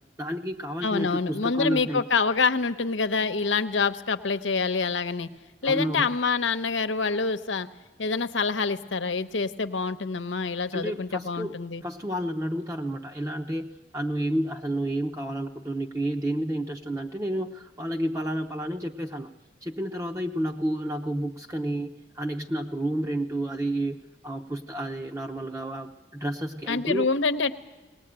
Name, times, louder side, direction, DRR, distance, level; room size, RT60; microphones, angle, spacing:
voice 1, 0.2-2.1 5.6-6.1 10.7-19.3 19.6-24.0 24.2-27.1, right 1 dB, 15° right, 2 dB, 0.8 m, -30 dB
voice 2, 0.8-5.3 5.6-7.7 8.0-11.8 26.7-27.5, left 4 dB, 85° left, 9 dB, 1.0 m, -26 dB
20.0 x 19.5 x 8.9 m, 1.2 s
head